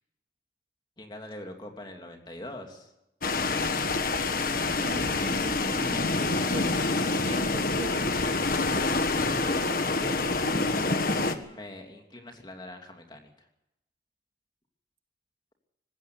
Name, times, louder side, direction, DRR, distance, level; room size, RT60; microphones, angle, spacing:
voice 1, 1.0-2.9 11.4-13.5, left 1 dB, 25° left, 3 dB, 3.0 m, -44 dB
sound 1, 3.2-11.4, left 3 dB, 55° left, 1.4 m, -27 dB
voice 2, 4.4-8.2 9.3-11.3, right 1 dB, 30° right, 4 dB, 2.0 m, -40 dB
19.5 x 16.5 x 8.0 m, 0.87 s
head